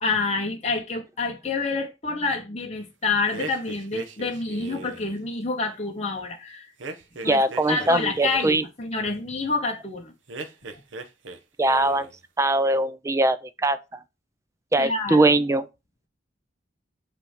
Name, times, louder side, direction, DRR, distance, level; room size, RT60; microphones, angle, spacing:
voice 1, 0.0-6.7 7.2-7.4 7.7-10.1 14.8-15.3, left 3 dB, 35° left, 0.9 m, -28 dB
sound 1, 3.3-5.2 6.8-8.6 10.3-11.4 11.6-12.2, right 3 dB, 75° right, 1.0 m, -38 dB
voice 2, 7.2-8.6 11.6-12.1 12.4-13.8 14.7-15.7, right 2 dB, 15° right, 0.4 m, -21 dB
8.2 x 3.3 x 5.0 m
head